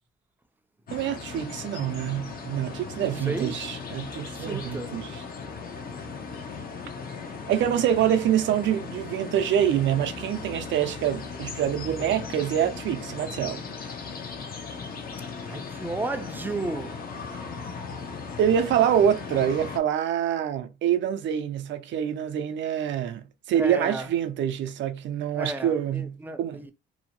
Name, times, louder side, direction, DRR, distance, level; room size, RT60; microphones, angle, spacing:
sound 1, 0.9-19.8, left 5 dB, 50° left, 0.7 m, -37 dB
voice 1, 0.9-5.2 7.5-13.6 18.4-26.6, right 10 dB, 70° right, 0.4 m, -26 dB
voice 2, 3.0-3.5 4.4-5.0 15.5-17.0 23.5-24.1 25.3-26.7, right 2 dB, 10° right, 0.4 m, -33 dB
2.6 x 2.1 x 2.9 m
cardioid pair, 90°, 20 cm